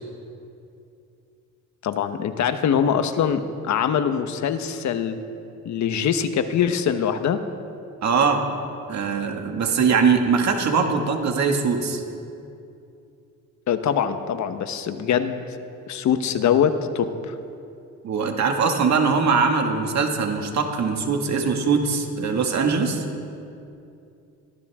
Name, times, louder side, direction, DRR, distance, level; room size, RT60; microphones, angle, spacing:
voice 1, 1.8-5.2 5.6-7.4 13.7-15.4 15.9-17.4, left 8 dB, 70° left, 8 dB, 1.2 m, -23 dB
voice 2, 8.0-8.4 8.9-12.0 18.0-23.0, right 5 dB, 65° right, 3 dB, 2.1 m, -21 dB
23.5 x 15.0 x 3.7 m, 2.6 s
cardioid pair, 90°, 30 cm